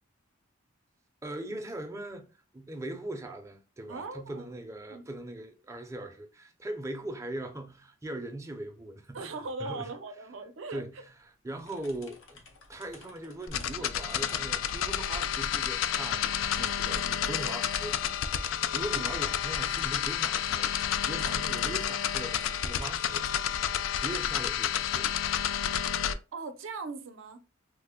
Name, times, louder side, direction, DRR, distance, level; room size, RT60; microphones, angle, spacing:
voice 1, 1.2-2.3 2.5-9.9 10.7-12.4 12.7-22.4 22.6-25.4, right 1 dB, 15° right, 0.5 m, -40 dB
voice 2, 3.9-4.5 4.9-5.0 9.1-10.8 19.0-19.1 26.3-27.4, right 3 dB, 75° right, 0.5 m, -39 dB
sound 1, 11.5-23.6, left 4 dB, 85° left, 0.7 m, -51 dB
sound 2, 13.5-26.1, left 9 dB, 70° left, 0.3 m, -30 dB
3.2 x 2.1 x 3.5 m
head